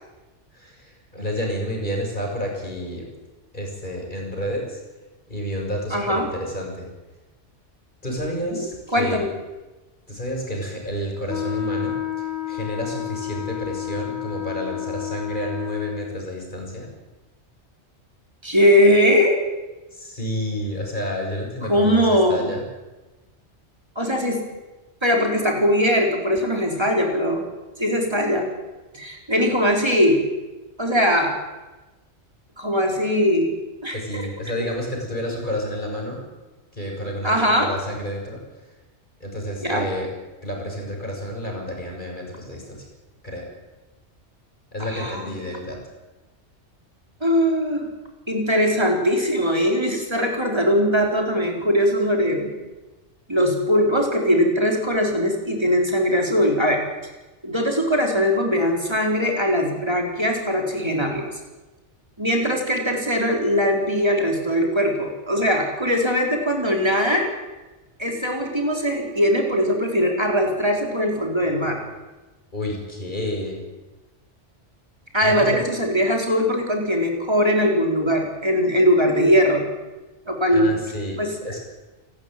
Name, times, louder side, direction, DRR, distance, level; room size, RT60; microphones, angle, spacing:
voice 1, 0.5-3.0 3.5-4.8 5.3-6.9 8.0-9.2 10.1-16.9 19.9-22.6 33.9-36.2 36.7-38.4 39.2-40.1 40.4-42.9 43.2-43.4 44.7-45.8 72.5-73.6 75.2-75.6 80.5-81.2 81.4-81.6, equal, 40° left, 0 dB, 6.6 m, -30 dB
voice 2, 5.9-6.3 8.4-9.3 18.4-19.4 21.7-22.5 24.0-24.4 25.0-27.5 27.8-28.5 28.9-30.2 30.8-31.3 32.6-33.6 33.8-34.3 37.2-37.8 39.6-39.9 44.8-45.3 47.2-47.9 48.3-52.5 53.3-56.8 57.4-61.3 62.2-67.3 68.0-71.8 75.1-79.6 80.3-80.7 81.2-81.3, equal, 20° right, 1 dB, 4.1 m, -20 dB
Wind instrument woodwind instrument, 11.3-16.1, left 10 dB, 65° left, 4.2 m, -30 dB
28.5 x 13.0 x 9.3 m, 1.1 s
omnidirectional pair, 1.2 m